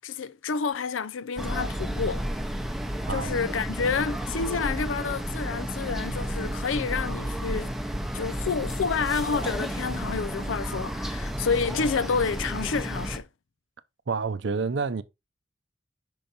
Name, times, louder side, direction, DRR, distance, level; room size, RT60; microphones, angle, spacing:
voice 1, 0.0-2.3 3.1-7.7 8.1-13.3, left 5 dB, 85° left, 0.5 m, -29 dB
sound 1, 1.4-13.2, equal, ahead, 0.7 m, -32 dB
voice 2, 14.1-15.0, right 4 dB, 65° right, 0.6 m, -28 dB
5.7 x 5.2 x 4.2 m
head